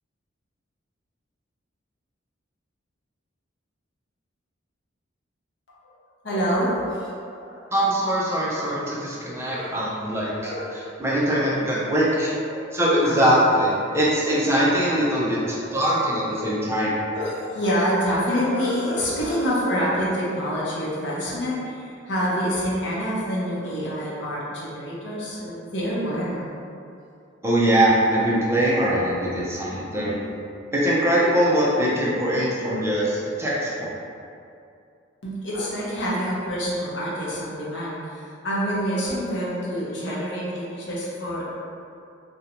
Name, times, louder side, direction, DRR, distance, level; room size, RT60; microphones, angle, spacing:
voice 1, 6.2-7.1 7.4-7.7 9.5-9.8 10.1-10.7 11.3-11.5 12.5-12.6 13.0-13.3 15.2-16.3 17.1-26.5 29.3-29.5 35.2-41.4, equal, 60° left, -7 dB, 0.6 m, -27 dB
voice 2, 7.7-10.5 11.0-12.3 12.7-16.9 27.4-30.3 30.7-34.0, right 1 dB, 15° right, -7 dB, 0.4 m, -22 dB
2.5 x 2.1 x 2.8 m, 2.5 s
head